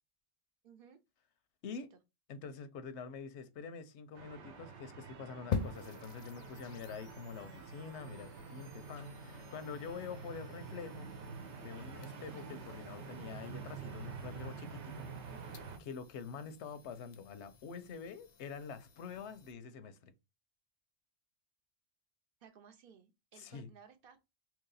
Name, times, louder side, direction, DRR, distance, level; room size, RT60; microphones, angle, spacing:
voice 1, 0.6-1.0 1.6-2.0 22.4-24.2, right 7 dB, 60° right, 0.8 m, -59 dB
voice 2, 2.3-11.1 11.6-15.1 15.5-20.1 23.4-23.7, left 5 dB, 85° left, 0.9 m, -46 dB
sound 1, 4.1-15.8, right 5 dB, 85° right, 1.0 m, -48 dB
sound 2, 5.5-19.5, left 6 dB, 55° left, 0.5 m, -47 dB
3.0 x 2.7 x 3.8 m
omnidirectional pair, 1.1 m